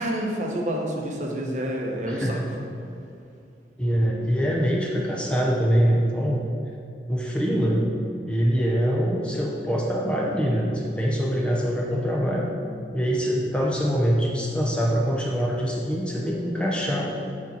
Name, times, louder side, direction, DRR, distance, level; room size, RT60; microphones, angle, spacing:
voice 1, 0.0-2.6, equal, 40° right, 0 dB, 0.9 m, -28 dB
voice 2, 2.1-2.5 3.8-6.5 7.1-7.9 8.3-12.5 12.9-17.1, equal, 5° left, -2 dB, 0.7 m, -24 dB
8.6 x 4.5 x 5.3 m, 2.6 s
head